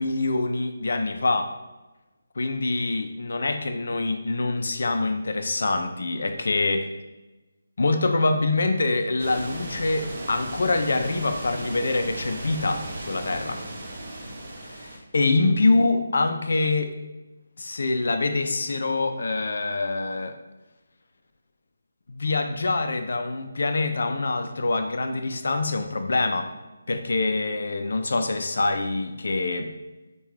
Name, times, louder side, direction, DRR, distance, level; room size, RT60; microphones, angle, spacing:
voice 1, 0.0-1.5 2.4-6.9 7.8-13.6 14.6-16.9 17.6-20.4 22.1-26.5 26.9-29.7, left 3 dB, 65° left, 7 dB, 0.4 m, -25 dB
sound 1, 9.2-15.0, right 1 dB, 45° right, 0.7 m, -36 dB
3.6 x 2.3 x 2.9 m, 1.1 s
figure-of-eight pair, 150°, 0 cm